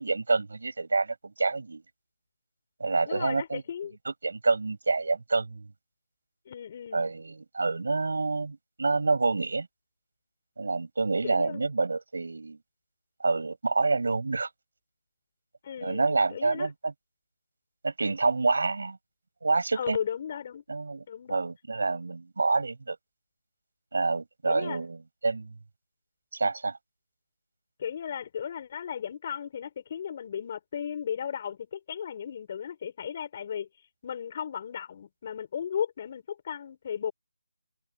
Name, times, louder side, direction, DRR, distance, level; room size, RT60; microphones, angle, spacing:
voice 1, 0.0-1.8 2.8-3.6 4.0-5.7 6.9-9.7 10.6-12.6 13.2-14.5 15.8-16.9 17.8-19.0 19.4-20.0 20.7-23.0 23.9-25.5 26.3-26.8, right 3 dB, 65° right, 6.5 m, -28 dB
voice 2, 3.1-4.0 6.5-7.1 11.2-11.6 15.6-16.7 19.8-20.6 21.1-21.5 24.4-24.8 27.8-33.7 34.0-37.1, left 8 dB, 30° left, 6.8 m, -35 dB
open air
figure-of-eight pair, 170°, 0 cm